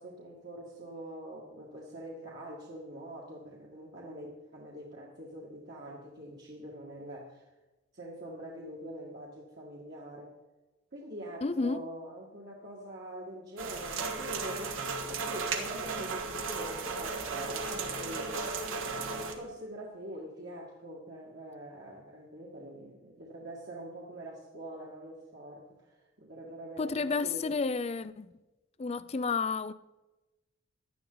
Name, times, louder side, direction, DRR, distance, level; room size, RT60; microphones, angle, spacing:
voice 1, 0.0-7.5 7.9-10.4 10.9-27.5, right 1 dB, 50° right, 1.9 m, -44 dB
voice 2, 11.4-11.8 26.8-28.3 28.8-29.7, left 4 dB, 30° left, 0.4 m, -31 dB
sound 1, 13.6-19.3, right 4 dB, 70° right, 1.5 m, -35 dB
16.5 x 11.0 x 3.9 m
head